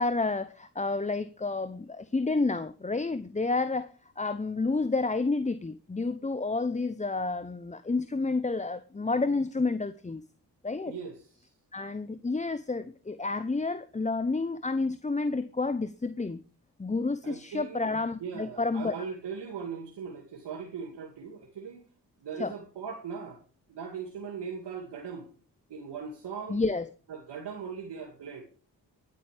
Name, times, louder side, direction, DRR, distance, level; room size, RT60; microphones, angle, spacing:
voice 1, 0.0-10.2 10.6-10.9 11.7-16.4 16.8-18.9 22.4-22.5 26.5-26.9, left 3 dB, 15° left, 0.8 m, -30 dB
voice 2, 10.9-11.3 17.2-17.9 18.2-21.8 22.2-23.4 23.7-25.3 25.7-26.6 27.1-28.4, right 6 dB, 70° right, 2.4 m, -39 dB
22.0 x 9.1 x 3.4 m
supercardioid pair, 45°, 42 cm